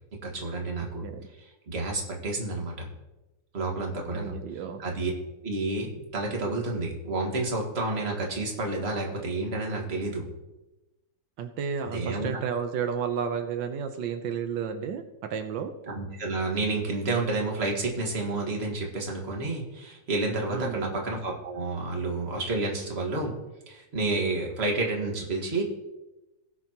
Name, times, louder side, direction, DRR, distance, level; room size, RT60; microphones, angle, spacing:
voice 1, 0.2-1.1 1.7-2.9 3.5-4.3 4.8-5.1 5.4-10.3 11.9-12.3 15.9-23.3 23.7-25.6, right 2 dB, 35° right, 0 dB, 1.9 m, -30 dB
voice 2, 4.1-4.8 11.4-15.7 20.5-21.0, right 7 dB, 90° right, 7 dB, 1.5 m, -32 dB
18.5 x 6.9 x 3.0 m, 1.0 s
omnidirectional pair, 2.0 m